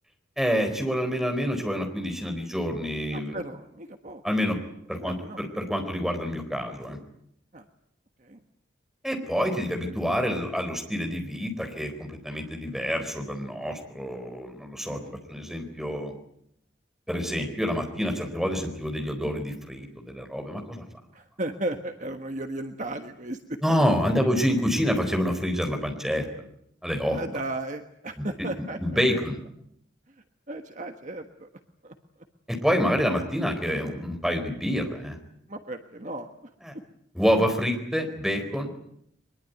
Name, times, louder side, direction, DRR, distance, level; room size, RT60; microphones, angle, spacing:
voice 1, 0.4-3.3 4.2-4.6 4.9-7.0 9.0-15.0 15.3-16.1 17.1-20.8 23.6-26.2 26.8-27.2 28.2-28.3 28.8-29.4 32.5-35.2 36.6-36.7 37.1-38.8, equal, ahead, 4 dB, 4.3 m, -27 dB
voice 2, 3.1-4.2 5.0-5.4 7.5-7.6 8.2-8.4 14.9-15.2 21.1-23.8 24.1-24.3 27.1-29.0 30.5-31.5 31.8-31.9 35.5-36.5, right 1 dB, 40° right, 6 dB, 1.4 m, -35 dB
23.0 x 22.0 x 9.3 m, 0.74 s
head